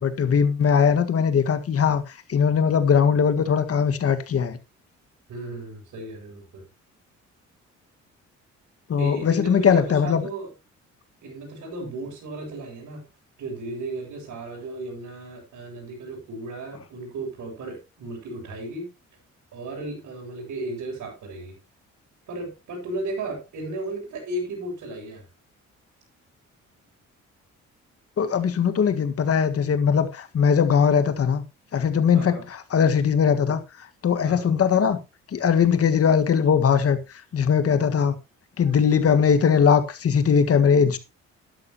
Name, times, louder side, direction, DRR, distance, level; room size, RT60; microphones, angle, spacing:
voice 1, 0.0-2.0 2.3-4.6 8.9-10.3 28.2-31.4 31.7-33.6 34.0-35.0 35.3-37.0 37.3-38.1 38.6-41.0, left 7 dB, 50° left, 1.6 m, -20 dB
voice 2, 5.3-6.6 9.0-10.5 11.2-13.1 13.4-18.9 19.5-21.6 22.3-25.2 32.1-32.5 34.2-34.5 38.6-38.7, right 2 dB, 75° right, 6.5 m, -35 dB
12.0 x 11.0 x 2.9 m
cardioid pair, 90°, 30 cm